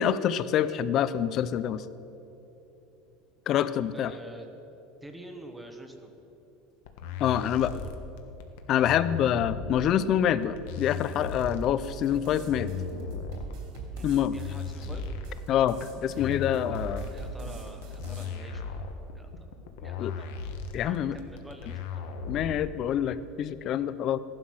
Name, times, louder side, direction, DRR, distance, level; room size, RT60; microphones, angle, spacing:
voice 1, 0.0-1.8 3.5-4.1 7.2-7.7 8.7-12.7 14.0-14.4 15.5-17.0 20.0-20.1 20.7-21.2 22.3-24.2, left 10 dB, 30° left, 15 dB, 0.4 m, -26 dB
voice 2, 3.9-4.5 5.0-6.1 7.4-7.9 13.9-15.1 16.7-18.9 19.1-19.3 19.8-20.4 20.8-22.1, right 1 dB, 5° right, 5 dB, 0.9 m, -47 dB
sound 1, 6.9-22.8, left 5 dB, 70° left, 1.3 m, -37 dB
sound 2, 11.4-18.2, right 4 dB, 55° right, 3.0 m, -43 dB
15.5 x 11.5 x 6.1 m, 3.0 s
cardioid pair, 175°, 0 cm